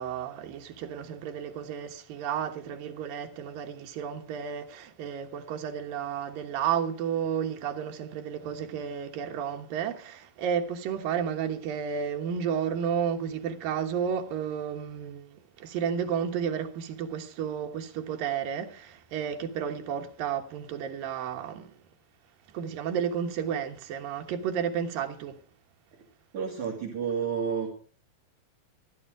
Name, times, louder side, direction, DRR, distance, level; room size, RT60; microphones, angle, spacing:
voice 1, 0.0-21.8 22.5-25.4, right 8 dB, 80° right, 3.0 m, -32 dB
voice 2, 26.3-27.7, right 6 dB, 60° right, 3.5 m, -30 dB
14.0 x 12.5 x 4.8 m
omnidirectional pair, 4.0 m